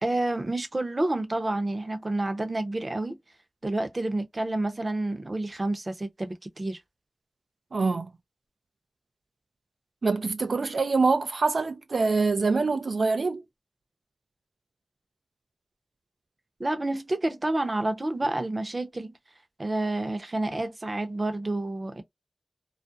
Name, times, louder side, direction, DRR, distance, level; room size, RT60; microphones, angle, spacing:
voice 1, 0.0-3.2 3.6-6.8 16.6-19.1 19.6-22.0, right 2 dB, 40° right, 0.7 m, -29 dB
voice 2, 7.7-8.1 10.0-13.4, right 4 dB, 75° right, 0.3 m, -25 dB
2.4 x 2.1 x 2.5 m
cardioid pair, 50°, 0 cm